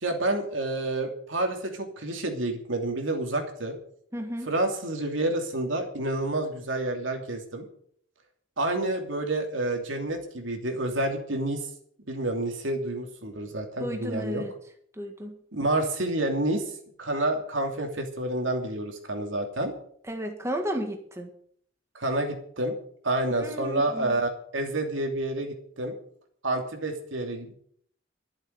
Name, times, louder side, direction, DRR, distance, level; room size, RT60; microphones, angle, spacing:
voice 1, 0.0-3.8 4.5-7.6 8.6-11.6 12.1-14.4 15.5-16.7 17.0-19.7 21.9-22.8 23.0-25.9 26.4-27.5, right 2 dB, 80° right, 3 dB, 2.8 m, -29 dB
voice 2, 4.1-4.5 13.8-14.5 15.0-15.4 20.1-21.3 23.3-24.1, equal, 15° right, 3 dB, 1.8 m, -33 dB
13.0 x 7.3 x 9.1 m, 0.63 s
head